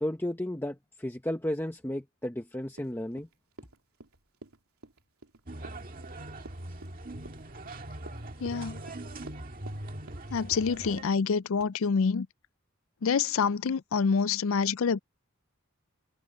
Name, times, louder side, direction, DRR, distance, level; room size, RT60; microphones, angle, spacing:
voice 1, 0.0-3.3, left 1 dB, 10° left, 0.9 m, -33 dB
Run, 2.7-9.8 10.1-10.7 11.0-11.3 11.6-11.7, right 2 dB, 85° right, 3.0 m, -50 dB
sound 1, 5.5-11.0, right 1 dB, 40° right, 1.9 m, -41 dB
voice 2, 8.4-8.8 10.3-12.3 13.0-15.0, left 5 dB, 65° left, 0.4 m, -27 dB
head